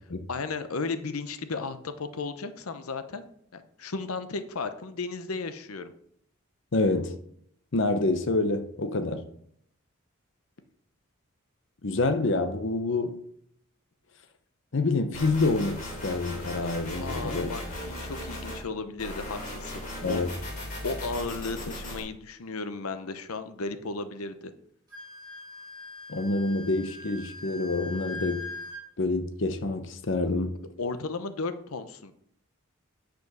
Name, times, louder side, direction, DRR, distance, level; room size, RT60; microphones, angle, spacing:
voice 1, 0.3-3.3 3.5-5.9 17.0-20.2 20.8-24.5 30.8-32.1, left 3 dB, 90° left, 0.8 m, -34 dB
voice 2, 6.7-7.2 7.7-9.2 11.8-13.2 14.7-17.5 20.0-20.3 26.1-28.5 29.0-30.6, left 2 dB, 60° left, 0.8 m, -27 dB
sound 1, 15.1-18.6 19.0-22.0, left 1 dB, 35° left, 3.2 m, -37 dB
Wind instrument woodwind instrument, 24.9-28.8, left 3 dB, 20° right, 4.5 m, -41 dB
9.4 x 5.2 x 6.0 m
head